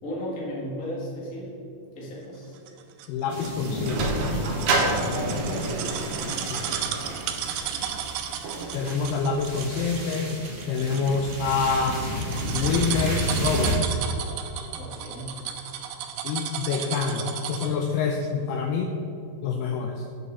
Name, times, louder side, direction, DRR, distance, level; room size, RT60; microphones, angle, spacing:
voice 1, 0.0-1.6 1.9-2.5 5.1-6.0 14.7-15.4, equal, 35° left, -6 dB, 1.3 m, -34 dB
sound 1, 2.7-17.8 18.2-18.3, right 9 dB, 85° right, 2.1 m, -34 dB
voice 2, 3.1-4.1 6.5-6.7 8.7-10.3 10.7-12.0 12.5-13.9 16.2-18.9 19.4-20.0, left 5 dB, 85° left, 3 dB, 2.3 m, -26 dB
sound 2, 3.3-13.7, equal, 45° right, 0.5 m, -32 dB
Sliding door, 3.4-10.0, right 3 dB, 70° right, 2.2 m, -31 dB
8.4 x 8.1 x 4.1 m, 2.7 s
omnidirectional pair, 5.1 m